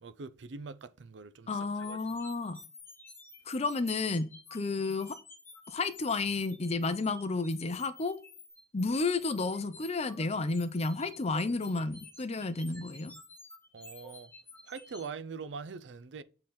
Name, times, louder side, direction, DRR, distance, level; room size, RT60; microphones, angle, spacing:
voice 1, 0.0-1.5 1.8-2.0 13.7-14.3 14.7-16.2, right 5 dB, 75° right, 0.5 m, -43 dB
voice 2, 1.5-2.6 3.5-5.2 5.7-8.2 8.7-13.2, left 3 dB, 35° left, 0.6 m, -32 dB
sound 1, 1.8-15.1, left 2 dB, 15° left, 1.6 m, -52 dB
7.4 x 3.9 x 4.3 m
head